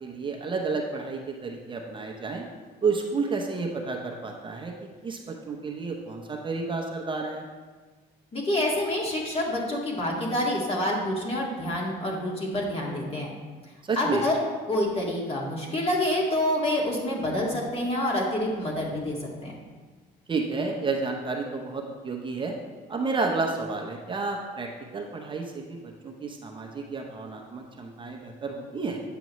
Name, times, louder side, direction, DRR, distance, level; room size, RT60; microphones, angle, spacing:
voice 1, 0.0-2.4 2.8-4.7 5.0-7.4 13.8-14.2 20.3-22.5 22.9-29.0, right 4 dB, 30° right, 1 dB, 0.8 m, -31 dB
voice 2, 8.3-13.3 14.0-19.6, left 1 dB, 35° left, -2 dB, 1.9 m, -27 dB
8.9 x 6.9 x 3.1 m, 1.4 s
cardioid pair, 110°, 17 cm